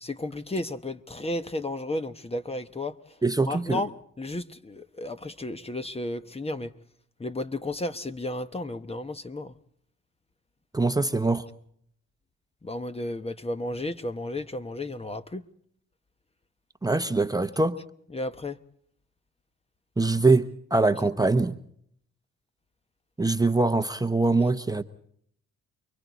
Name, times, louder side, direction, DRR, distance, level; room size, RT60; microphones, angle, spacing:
voice 1, 0.0-2.9 3.4-3.9 4.2-6.7 7.2-9.5 12.6-15.4 18.1-18.6, left 1 dB, 20° left, 1.1 m, -33 dB
voice 2, 3.2-3.8 10.7-11.4 16.8-17.8 20.0-21.6 23.2-24.8, right 3 dB, 10° right, 0.9 m, -23 dB
29.5 x 22.5 x 4.1 m
cardioid pair, 90°, 30 cm